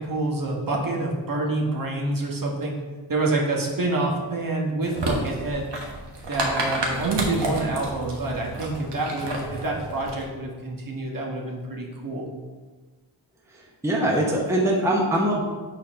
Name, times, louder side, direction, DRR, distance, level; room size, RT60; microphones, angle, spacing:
voice 1, 0.0-2.7 3.1-5.7 6.3-12.3, right 2 dB, 45° right, -1 dB, 1.3 m, -27 dB
sound 1, 4.8-10.2, right 2 dB, 60° right, 1.4 m, -31 dB
voice 2, 13.5-15.4, right 1 dB, 5° right, -2 dB, 0.9 m, -23 dB
6.6 x 4.1 x 5.1 m, 1.4 s
wide cardioid pair, 120°, 47 cm